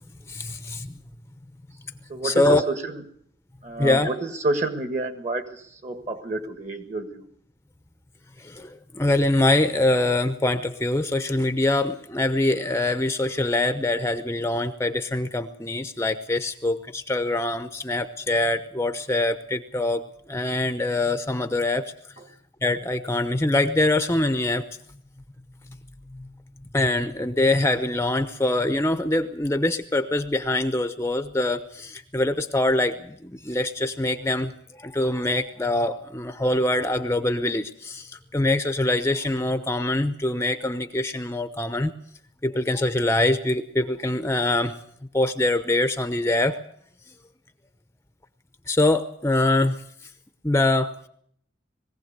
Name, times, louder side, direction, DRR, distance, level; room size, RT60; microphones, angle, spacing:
voice 1, 0.3-0.9 2.2-2.6 3.8-4.1 8.4-20.0 20.3-21.9 22.6-24.6 26.7-34.5 34.8-41.9 42.4-44.7 45.1-46.6 48.7-49.8 50.4-51.0, left 2 dB, 15° left, 9 dB, 0.8 m, -24 dB
voice 2, 2.1-3.0 3.6-7.2 22.2-22.3, right 2 dB, 35° right, 8 dB, 1.7 m, -29 dB
21.0 x 16.0 x 8.1 m, 0.66 s
head